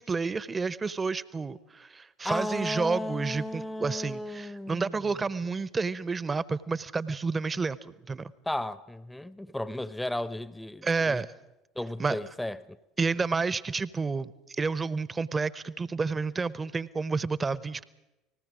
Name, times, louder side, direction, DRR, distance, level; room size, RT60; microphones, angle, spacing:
voice 1, 0.0-8.3 10.8-11.3 12.0-12.2 13.0-17.8, right 4 dB, 25° right, 0.9 m, -30 dB
voice 2, 2.2-4.9 8.5-11.2 11.8-12.8, left 1 dB, 5° left, 0.8 m, -34 dB
30.0 x 20.0 x 5.0 m
figure-of-eight pair, 60°, 0 cm